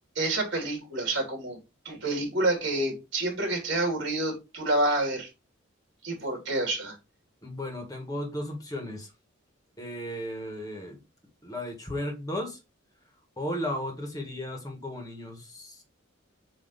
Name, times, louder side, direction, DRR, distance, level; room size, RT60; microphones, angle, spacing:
voice 1, 0.1-1.6 1.8-5.3 6.0-7.0, right 2 dB, 55° right, 3.0 m, -28 dB
voice 2, 7.4-9.1 9.8-11.0 11.4-12.6 13.4-15.8, left 1 dB, 15° left, 1.6 m, -35 dB
7.6 x 3.1 x 4.1 m
head